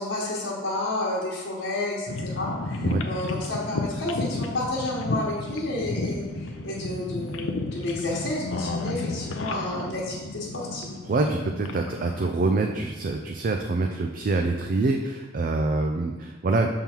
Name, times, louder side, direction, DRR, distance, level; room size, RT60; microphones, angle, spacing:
voice 1, 0.0-11.0, left 2 dB, 65° left, -8 dB, 1.3 m, -31 dB
sound 1, 2.1-12.3, left 2 dB, 85° left, 0.6 m, -32 dB
voice 2, 11.1-16.7, right 3 dB, 45° right, 3 dB, 0.4 m, -25 dB
7.1 x 3.7 x 4.4 m, 1.2 s
head